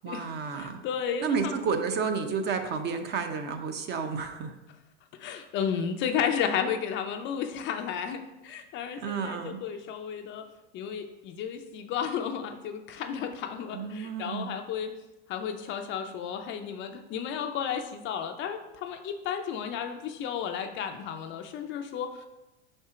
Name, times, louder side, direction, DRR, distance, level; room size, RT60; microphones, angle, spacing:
voice 1, 0.0-0.8 1.2-4.5 9.0-9.6 13.7-14.6, right 5 dB, 30° right, 6 dB, 0.6 m, -31 dB
voice 2, 0.5-1.5 5.2-10.5 10.7-14.9 15.3-22.2, left 7 dB, 35° left, 6 dB, 0.5 m, -33 dB
5.3 x 4.4 x 4.8 m, 0.98 s
supercardioid pair, 120°, 36 cm